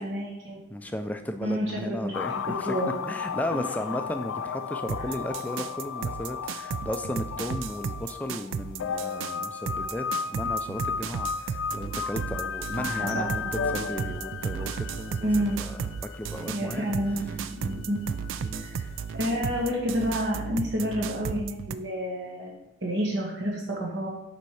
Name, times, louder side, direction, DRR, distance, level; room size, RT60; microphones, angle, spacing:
voice 1, 0.0-0.6 1.4-2.2 2.6-2.9 3.5-3.6 12.8-13.7 15.2-15.6 16.5-18.0 18.5-18.7 19.1-22.5 22.8-24.1, equal, 60° right, -2 dB, 1.4 m, -29 dB
voice 2, 0.7-2.7 3.1-15.3 15.6-16.9 18.4-18.9, left 1 dB, 10° left, 7 dB, 0.4 m, -35 dB
sound 1, 2.1-19.3 19.6-19.7, left 6 dB, 80° left, 0.4 m, -35 dB
sound 2, 4.9-21.8, right 6 dB, 75° right, 0.3 m, -34 dB
6.8 x 4.4 x 4.8 m, 0.82 s
head